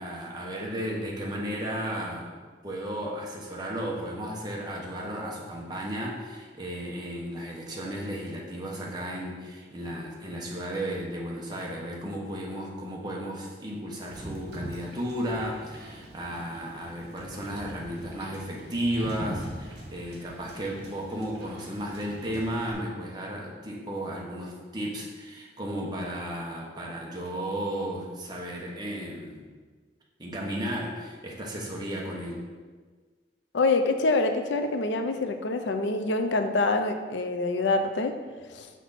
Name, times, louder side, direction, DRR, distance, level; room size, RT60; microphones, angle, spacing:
voice 1, 0.0-2.3 2.6-29.4 30.2-32.4, equal, 25° right, -3 dB, 1.1 m, -34 dB
Wind / Boat Water vehicle, 14.1-22.7, right 1 dB, 65° right, 1.9 m, -42 dB
voice 2, 33.5-38.1 38.5-38.7, left 3 dB, 85° left, 7 dB, 0.6 m, -26 dB
5.9 x 5.8 x 4.2 m, 1.5 s
head